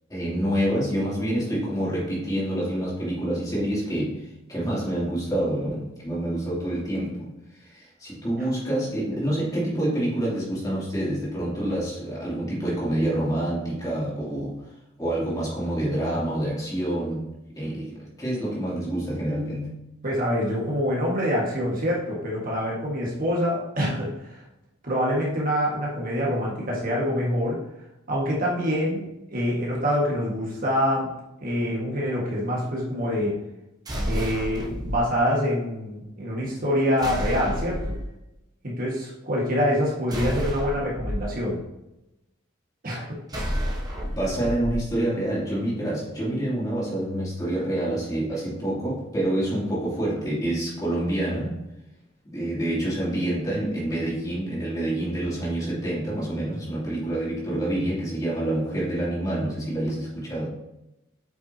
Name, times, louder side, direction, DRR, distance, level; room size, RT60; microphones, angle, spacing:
voice 1, 0.1-7.3 7.6-14.6 15.0-19.7 44.1-51.6 52.2-60.5, right 1 dB, 20° left, -7 dB, 2.7 m, -27 dB
voice 2, 20.0-24.4 24.8-27.6 28.1-31.1 31.4-33.4 34.1-38.0 38.6-41.6 42.8-43.2, equal, 45° right, -3 dB, 1.7 m, -25 dB
sound 1, 33.9-35.0 37.0-38.0 40.1-41.2 43.3-44.8, equal, 20° right, 1.1 m, -30 dB
8.1 x 6.0 x 2.8 m, 0.91 s
head